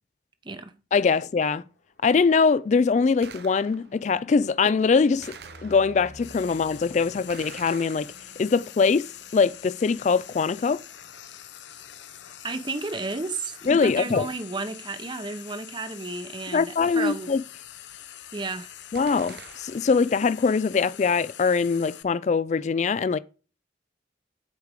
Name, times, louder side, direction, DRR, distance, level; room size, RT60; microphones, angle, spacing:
voice 1, 0.9-1.6 2.0-5.3 5.6-8.1 8.4-9.1 9.3-10.8 13.7-14.3 16.5-17.4 18.9-23.2, left 5 dB, 40° left, 0.3 m, -22 dB
sound 1, 1.6-15.4 15.8-16.3 16.5-16.6 16.9-17.0 17.2-20.0, left 1 dB, 55° left, 1.6 m, -54 dB
Gunshot gunfire, 3.2-4.0 5.2-6.2 7.3-8.6 19.0-20.0, right 6 dB, 60° right, 0.8 m, -46 dB
Frying (food), 6.2-22.0, left 11 dB, 75° left, 0.6 m, -45 dB
voice 2, 12.4-17.3 18.3-18.7, right 3 dB, 25° right, 0.7 m, -33 dB
8.3 x 4.6 x 6.7 m
head